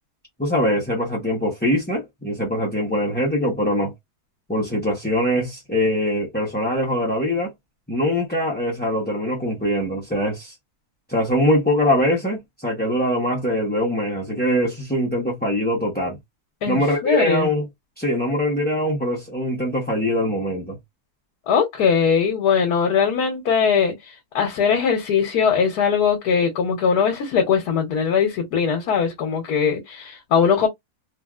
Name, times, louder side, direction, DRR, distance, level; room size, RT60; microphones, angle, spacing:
voice 1, 0.4-3.9 4.5-7.5 7.9-10.5 11.1-16.2 16.7-17.7 18.0-20.8, equal, 10° left, 0.4 m, -22 dB
voice 2, 16.6-17.5 21.5-30.7, left 6 dB, 85° left, 1.3 m, -20 dB
3.2 x 2.4 x 2.3 m
omnidirectional pair, 1.6 m